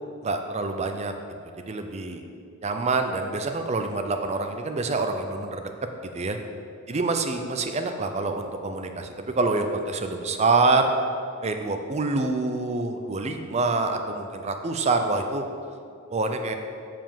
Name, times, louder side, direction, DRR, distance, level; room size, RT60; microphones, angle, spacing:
voice 1, 0.2-1.1 1.6-2.2 2.6-5.7 6.1-6.4 6.9-10.9 11.4-15.4 16.1-16.6, right 3 dB, 30° right, 6 dB, 0.5 m, -26 dB
7.1 x 5.0 x 5.6 m, 2.4 s
head